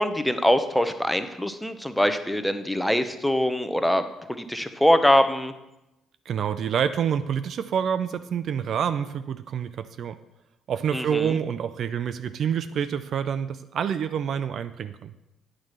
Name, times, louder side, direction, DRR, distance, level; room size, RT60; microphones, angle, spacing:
voice 1, 0.0-5.5 10.9-11.4, equal, 5° left, 9 dB, 0.8 m, -23 dB
voice 2, 6.3-10.2 10.7-15.1, right 8 dB, 55° right, 11 dB, 0.4 m, -27 dB
9.0 x 4.8 x 5.7 m, 0.91 s
hypercardioid pair, 45°, 0 cm